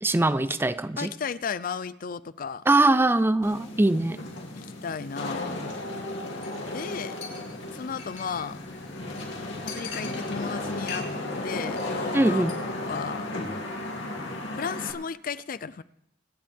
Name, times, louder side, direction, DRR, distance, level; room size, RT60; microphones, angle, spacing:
voice 1, 0.0-1.1 2.7-4.2 12.1-12.5, right 2 dB, 10° right, 14 dB, 0.4 m, -22 dB
voice 2, 1.0-2.6 4.5-5.7 6.7-7.2 7.7-8.6 9.7-11.1 11.4-12.5 12.9-13.3 14.5-15.8, left 6 dB, 50° left, 16 dB, 0.5 m, -34 dB
Wind / Rain, 3.4-14.9, left 2 dB, 90° left, 2.6 m, -34 dB
Chink clink, 6.4-6.6 6.9-7.0 7.2-8.5 8.9-9.0 9.2-9.3 9.7-10.5 10.8-11.4 11.6-11.9 12.2-12.5 12.9-13.0, left 6 dB, 70° left, 6.6 m, -41 dB
24.5 x 10.5 x 3.5 m, 0.77 s
head